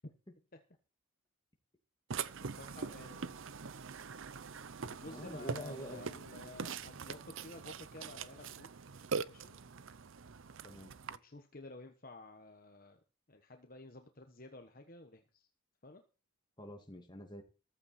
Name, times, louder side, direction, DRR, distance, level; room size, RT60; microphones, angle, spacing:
Burping eructation, 2.1-11.2, right 5 dB, 65° right, 0.6 m, -43 dB
voice 1, 2.4-3.4 4.8-8.7 9.2-9.6 11.1-13.0 13.3-15.5 15.8-16.0, left 2 dB, 40° left, 5 dB, 1.2 m, -52 dB
voice 2, 5.0-6.2 10.6-10.9 16.6-17.4, left 1 dB, 20° left, 3 dB, 2.2 m, -47 dB
14.5 x 12.5 x 4.3 m, 0.35 s
head